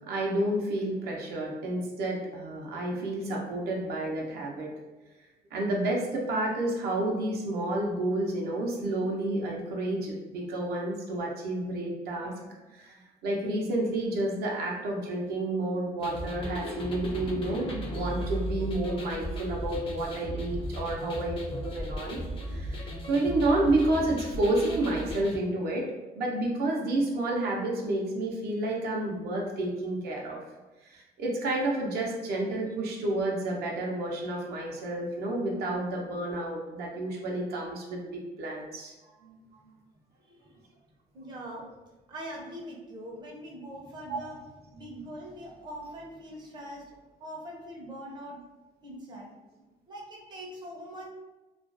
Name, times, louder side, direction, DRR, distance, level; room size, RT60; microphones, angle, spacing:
voice 1, 0.1-4.8 5.5-12.3 12.7-22.2 22.5-25.9 26.1-30.4 30.8-39.4 44.1-44.2, right 1 dB, 70° right, -2 dB, 0.6 m, -30 dB
sound 1, 16.0-25.4, equal, 30° left, 0.5 m, -36 dB
voice 2, 40.2-40.6 41.1-41.7 42.1-46.9 47.2-48.4 48.8-49.3 49.9-51.1, equal, 25° right, -2 dB, 0.5 m, -42 dB
2.4 x 2.2 x 2.4 m, 1.1 s
cardioid pair, 110°, 17 cm